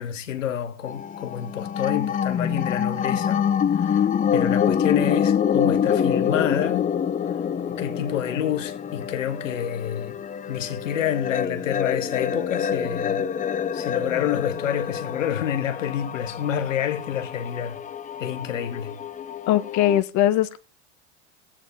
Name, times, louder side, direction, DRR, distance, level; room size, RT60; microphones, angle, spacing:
voice 1, 0.0-3.4 3.7-6.9 7.6-10.2 10.5-13.2 13.7-17.8 18.2-19.0, left 9 dB, 90° left, 1.1 m, -28 dB
sound 1, 0.9-20.0, left 8 dB, 20° left, 0.6 m, -26 dB
voice 2, 19.5-20.6, left 12 dB, 50° left, 1.0 m, -20 dB
20.5 x 8.4 x 3.5 m
hypercardioid pair, 85°, 37 cm